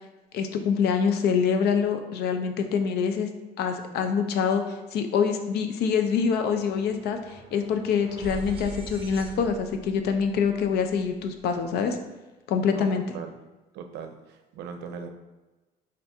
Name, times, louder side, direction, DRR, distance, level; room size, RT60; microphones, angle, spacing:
voice 1, 0.3-3.3 3.6-12.0 12.5-13.0, left 6 dB, 75° left, 6 dB, 0.5 m, -25 dB
sound 1, 5.1-5.2 5.5-11.7, right 3 dB, 35° right, 0.7 m, -44 dB
voice 2, 12.7-13.3 13.7-15.1, right 6 dB, 80° right, 6 dB, 0.5 m, -39 dB
4.2 x 2.5 x 3.4 m, 1.1 s
cardioid pair, 110°, 17 cm